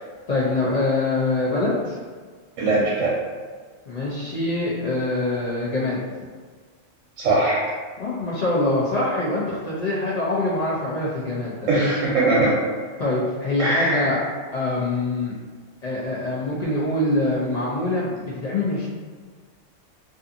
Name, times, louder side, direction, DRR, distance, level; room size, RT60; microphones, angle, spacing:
voice 1, 0.3-2.0 3.9-6.0 8.0-12.0 13.0-14.2 14.5-15.3 15.8-18.9, left 2 dB, 75° left, -7 dB, 0.3 m, -24 dB
voice 2, 2.6-3.1 7.2-7.6 11.7-12.6 13.6-14.1, right 2 dB, 90° right, -5 dB, 1.0 m, -20 dB
2.5 x 2.5 x 2.5 m, 1.5 s
omnidirectional pair, 1.3 m